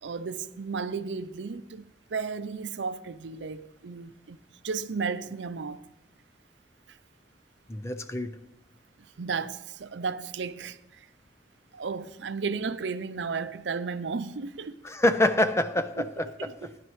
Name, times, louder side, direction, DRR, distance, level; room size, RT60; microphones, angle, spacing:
voice 1, 0.0-4.4 4.6-5.8 9.2-11.1 11.7-14.7 16.0-16.1 16.4-16.8, right 5 dB, 80° right, 0.5 m, -34 dB
voice 2, 7.7-8.4 14.8-16.3, left 1 dB, 15° left, 0.5 m, -25 dB
17.5 x 11.0 x 3.2 m
head